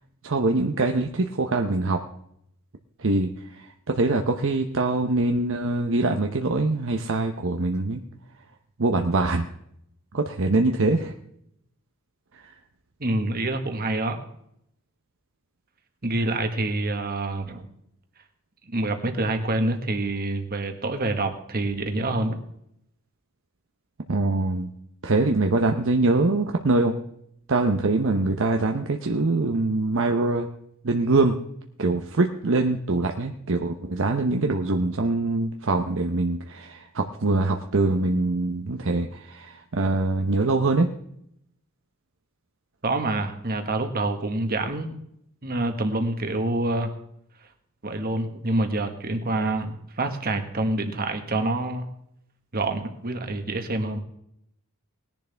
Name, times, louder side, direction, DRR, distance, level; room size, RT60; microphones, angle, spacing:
voice 1, 0.2-2.0 3.0-8.0 8.8-9.5 10.1-11.2 12.3-12.5 24.1-24.7 25.0-26.9 27.5-30.5 30.8-31.4 31.8-40.9, right 2 dB, 60° right, 4 dB, 0.8 m, -23 dB
voice 2, 13.0-14.2 16.0-17.7 18.7-22.4 42.8-45.0 45.4-46.9 47.8-51.8 52.5-54.0, right 2 dB, 45° right, 6 dB, 1.5 m, -27 dB
19.5 x 10.5 x 3.4 m, 0.74 s
head